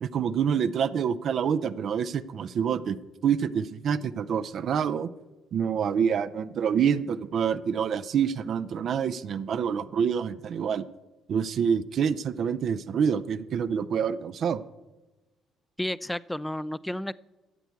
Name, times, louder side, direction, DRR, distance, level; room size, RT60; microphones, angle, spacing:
voice 1, 0.0-3.0 3.2-5.1 5.5-10.9 11.3-14.6, right 7 dB, 55° right, 13 dB, 0.5 m, -27 dB
voice 2, 15.8-17.1, left 1 dB, 10° left, 18 dB, 0.4 m, -31 dB
13.5 x 8.0 x 4.6 m, 1.1 s
hypercardioid pair, 50°, 0 cm